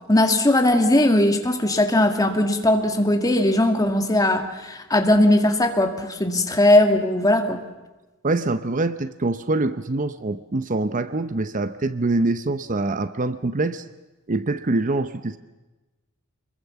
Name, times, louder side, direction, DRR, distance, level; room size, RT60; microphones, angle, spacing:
voice 1, 0.1-7.6, left 1 dB, 15° left, 5 dB, 2.2 m, -19 dB
voice 2, 8.2-13.8 14.3-15.4, right 2 dB, 40° right, 12 dB, 0.7 m, -24 dB
26.5 x 22.0 x 7.0 m, 1.1 s
head